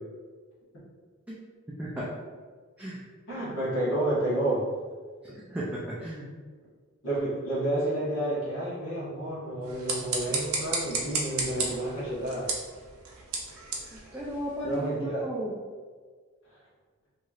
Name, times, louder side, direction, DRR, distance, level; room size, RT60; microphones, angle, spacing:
voice 1, 3.3-4.7 7.0-12.5 14.6-15.2, right 1 dB, 65° left, -9 dB, 1.3 m, -30 dB
voice 2, 5.2-6.3 13.9-15.6, equal, 5° right, -7 dB, 0.3 m, -35 dB
sound 1, 9.6-14.9, right 3 dB, 85° right, 0.6 m, -34 dB
3.1 x 2.7 x 2.4 m, 1.6 s
head